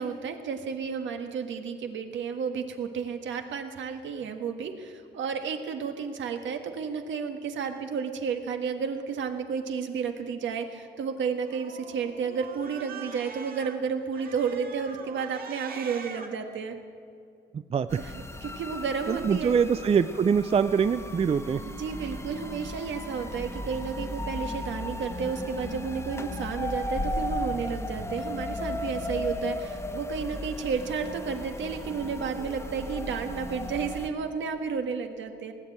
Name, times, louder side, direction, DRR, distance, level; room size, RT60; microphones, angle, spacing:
voice 1, 0.0-16.8 18.4-19.5 21.7-35.5, right 6 dB, 70° right, 6 dB, 1.5 m, -32 dB
Cat, 11.4-13.7 14.1-16.3, right 5 dB, 50° right, 1.8 m, -43 dB
voice 2, 17.5-18.0 19.1-21.6, right 6 dB, 30° right, 12 dB, 0.4 m, -24 dB
sound 1, 17.9-34.1, left 1 dB, 15° left, 1.2 m, -35 dB
18.5 x 7.9 x 8.5 m, 2.5 s
cardioid pair, 90°, 20 cm